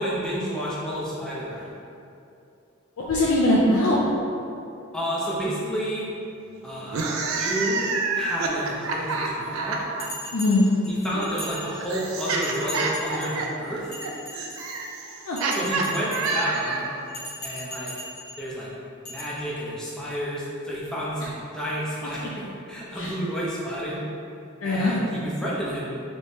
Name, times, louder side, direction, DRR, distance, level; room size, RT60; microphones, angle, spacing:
voice 1, 0.0-1.8 4.9-6.1 6.6-7.9 8.1-9.9 10.9-13.9 15.5-16.9 17.4-17.9 18.4-18.7 19.1-24.0 24.6-26.0, equal, 5° left, -7 dB, 0.5 m, -30 dB
voice 2, 3.0-4.1 10.3-10.7 15.3-15.4 22.9-23.1 24.6-24.9, left 1 dB, 75° left, -5 dB, 0.4 m, -21 dB
sound 1, 6.8-10.1 11.1-17.0, right 4 dB, 75° right, 0.4 m, -28 dB
Bell, 10.0-12.0 12.4-13.4 13.8-14.9 15.4-16.6 17.1-18.4 19.0-19.2, equal, 50° left, 1.0 m, -38 dB
3.3 x 3.1 x 2.7 m, 2.7 s
head